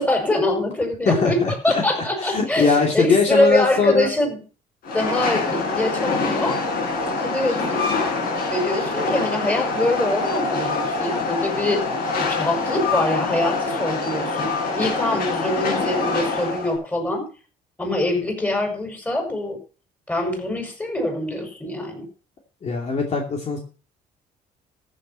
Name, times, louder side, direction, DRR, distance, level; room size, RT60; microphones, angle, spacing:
voice 1, 0.0-4.4 4.9-6.6 7.2-7.9 8.5-11.8 12.2-17.3 17.8-19.6 20.1-22.0, left 1 dB, 10° left, 3 dB, 5.6 m, -24 dB
voice 2, 1.1-4.1 22.6-23.6, left 5 dB, 40° left, 1 dB, 2.7 m, -21 dB
Train, 4.8-16.8, left 3 dB, 65° left, 5.9 m, -25 dB
14.5 x 7.3 x 5.6 m, 0.37 s
cardioid pair, 110°, 17 cm